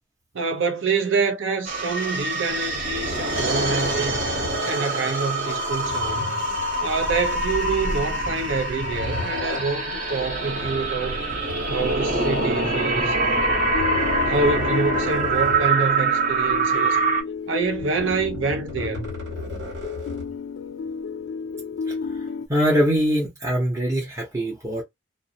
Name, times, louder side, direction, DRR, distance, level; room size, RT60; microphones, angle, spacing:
voice 1, 0.3-4.2 4.7-6.5 6.8-11.3 11.7-13.2 14.3-17.0 17.5-19.1, right 4 dB, 80° right, 0.7 m, -26 dB
sound 1, 1.6-17.2, right 2 dB, 45° right, 1.0 m, -25 dB
sound 2, 2.7-4.7 5.8-7.9 8.5-9.8 10.6-12.1 13.3-15.8 16.2-16.3 17.6-20.4, left 2 dB, 65° right, 1.1 m, -36 dB
sound 3, 13.3-22.5, left 5 dB, 70° left, 0.3 m, -32 dB
voice 2, 21.9-24.8, equal, 15° right, 0.8 m, -23 dB
2.4 x 2.0 x 2.7 m
head